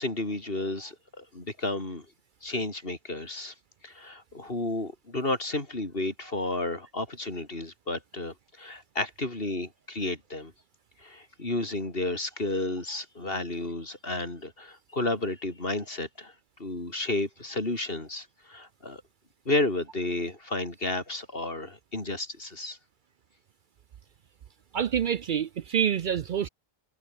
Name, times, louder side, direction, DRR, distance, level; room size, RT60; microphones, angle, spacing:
voice 1, 0.0-2.1 2.4-3.5 3.8-10.5 11.0-16.3 16.6-19.0 19.5-22.8, left 2 dB, 60° left, 4.4 m, -32 dB
voice 2, 24.7-26.5, right 8 dB, 60° right, 0.7 m, -27 dB
omnidirectional pair, 1.1 m